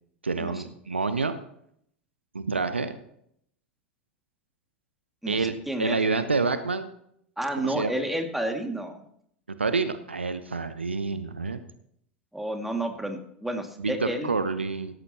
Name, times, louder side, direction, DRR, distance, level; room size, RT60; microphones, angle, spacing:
voice 1, 0.2-1.4 2.3-2.9 5.3-5.5 5.8-6.8 7.6-8.0 9.6-11.6 13.8-14.9, right 4 dB, 80° right, 11 dB, 0.9 m, -28 dB
voice 2, 5.2-6.0 7.4-9.0 12.3-14.3, right 1 dB, 5° right, 4 dB, 2.2 m, -31 dB
17.0 x 13.5 x 2.9 m, 0.69 s
figure-of-eight pair, 85°, 6 cm